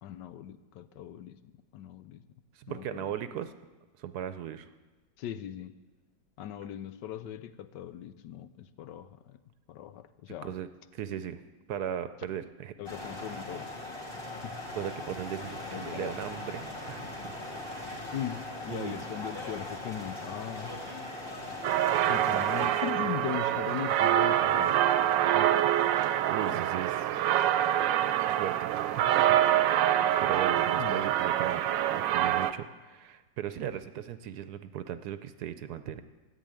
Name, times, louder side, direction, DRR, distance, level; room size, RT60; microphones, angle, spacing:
voice 1, 0.0-1.4 1.7-2.2 2.7-3.1 5.2-5.7 6.4-9.4 9.7-10.5 12.8-13.7 14.4-14.6 15.6-16.2 18.1-20.7 22.1-24.7 30.8-31.0, left 10 dB, 80° left, 12 dB, 1.3 m, -39 dB
voice 2, 2.5-3.5 4.0-4.7 10.4-10.7 10.9-11.4 11.7-12.7 14.2-14.3 14.7-18.0 18.7-19.2 22.0-22.8 25.3-25.5 26.3-27.1 28.2-31.6 31.9-36.0, right 9 dB, 70° right, 11 dB, 1.1 m, -38 dB
sound 1, 12.8-22.7, left 2 dB, 30° left, 2.5 m, -40 dB
sound 2, 21.6-32.5, right 11 dB, 85° right, 1.3 m, -26 dB
14.0 x 9.1 x 8.8 m, 1.2 s
omnidirectional pair, 1.9 m